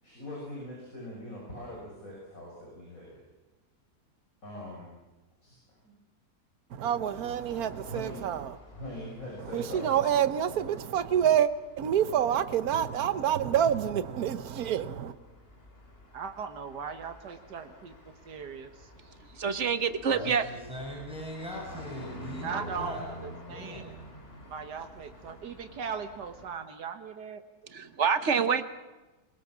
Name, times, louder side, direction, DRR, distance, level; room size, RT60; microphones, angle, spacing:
voice 1, 0.0-3.2 4.4-4.9 5.4-5.6 5.8-5.9 7.8-8.2 8.7-10.0, left 1 dB, 55° left, 6.5 m, -42 dB
voice 2, 6.7-8.6 9.5-11.5 11.8-15.1, right 9 dB, 65° right, 1.4 m, -27 dB
sound 1, 7.1-26.5, equal, 35° left, 3.1 m, -49 dB
voice 3, 16.1-17.9 18.3-18.9 22.4-23.8 24.5-27.4, right 6 dB, 90° right, 2.0 m, -39 dB
voice 4, 19.3-20.5 27.7-28.6, right 6 dB, 50° right, 1.3 m, -26 dB
voice 5, 20.1-23.1 23.5-24.0, equal, 5° right, 5.5 m, -40 dB
22.0 x 22.0 x 7.3 m
omnidirectional pair, 1.7 m